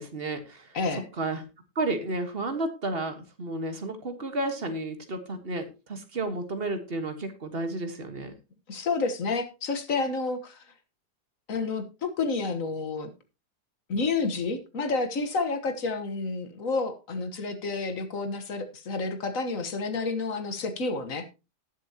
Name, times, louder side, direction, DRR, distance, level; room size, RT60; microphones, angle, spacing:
voice 1, 0.0-0.7 1.2-1.4 1.7-8.3, right 2 dB, 40° right, 8 dB, 1.5 m, -32 dB
voice 2, 0.7-1.0 8.7-10.6 11.5-13.1 13.9-21.2, left 4 dB, 55° left, 8 dB, 1.6 m, -30 dB
18.5 x 7.2 x 2.8 m, 0.28 s
omnidirectional pair, 1.7 m